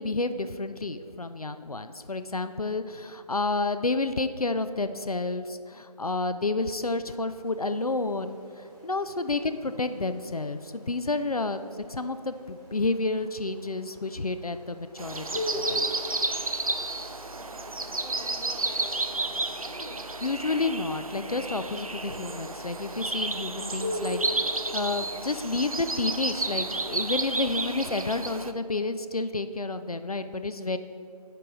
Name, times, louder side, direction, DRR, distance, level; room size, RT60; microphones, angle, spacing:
voice 1, 0.0-11.6 11.9-15.8 20.2-30.8, left 3 dB, 65° left, 10 dB, 0.4 m, -30 dB
sound 1, 7.4-26.5, left 1 dB, 5° right, 1.9 m, -42 dB
sound 2, 15.0-28.5, right 2 dB, 60° right, 0.4 m, -32 dB
voice 2, 17.3-19.9, right 1 dB, 90° right, -2 dB, 1.2 m, -47 dB
9.7 x 4.6 x 3.8 m, 2.4 s
figure-of-eight pair, 175°, 21 cm